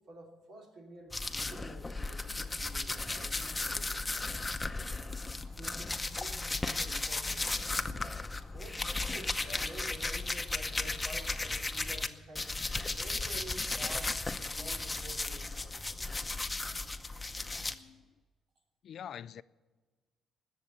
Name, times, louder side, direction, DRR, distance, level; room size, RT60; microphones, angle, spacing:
voice 1, 0.1-4.0 5.4-7.5 8.5-12.6 12.9-16.1 17.0-17.1, right 2 dB, 65° right, 3.0 m, -50 dB
sound 1, 1.1-12.1 12.3-17.7, left 2 dB, 15° left, 0.8 m, -35 dB
voice 2, 17.7-18.1 18.8-19.4, left 9 dB, 65° left, 0.3 m, -45 dB
19.5 x 6.9 x 8.6 m
cardioid pair, 90°, 0 cm